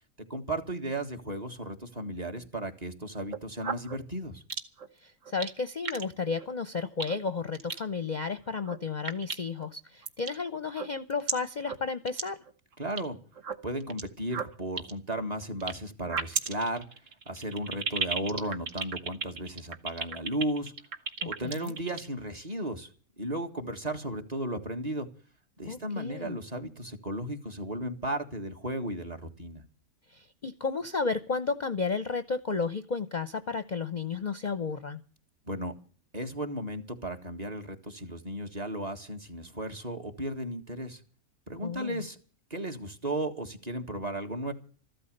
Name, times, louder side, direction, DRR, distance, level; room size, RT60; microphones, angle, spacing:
voice 1, 0.2-4.4 12.8-13.2 13.6-16.9 17.3-20.7 21.2-22.9 23.2-25.1 25.6-29.6 35.5-35.8 36.1-41.0 41.5-42.2 42.5-44.5, right 1 dB, 30° right, 4 dB, 1.8 m, -35 dB
sound 1, 3.2-4.0 4.5-4.9 5.3-5.5 5.9-6.1 6.4-6.5 7.0-7.2 7.5-7.8 8.5-8.8 9.1-9.7 10.0-10.4 10.7-11.3 11.6-11.8 12.1-12.2 12.5-13.0 13.4-14.0 14.3-15.7 16.0-22.1, right 5 dB, 65° right, 1.6 m, -33 dB
voice 2, 5.0-12.4 21.2-21.8 25.7-26.4 30.1-35.0 41.6-42.0, left 4 dB, 40° left, 10 dB, 0.7 m, -33 dB
14.5 x 12.5 x 6.6 m, 0.41 s
omnidirectional pair, 1.4 m